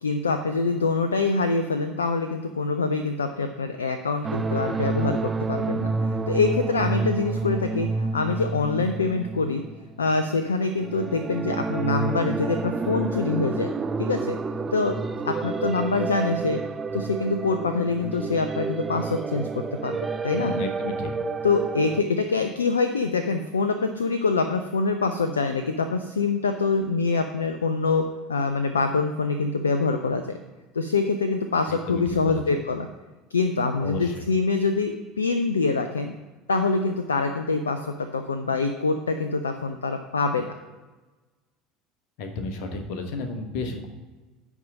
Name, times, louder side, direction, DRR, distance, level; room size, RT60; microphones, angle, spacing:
voice 1, 0.0-9.6 10.0-13.7 14.0-14.4 14.7-16.6 16.9-20.0 20.2-20.5 21.4-30.4 30.7-32.9 33.3-36.1 36.5-40.5, left 4 dB, 75° left, 8 dB, 0.4 m, -25 dB
sound 1, 4.2-10.2 10.8-22.0, right 4 dB, 20° right, 0.4 m, -29 dB
voice 2, 20.3-21.1 31.9-32.4 33.8-34.2 42.2-43.9, left 3 dB, 55° left, 5 dB, 1.2 m, -32 dB
10.5 x 3.6 x 7.3 m, 1.2 s
figure-of-eight pair, 70°, 0 cm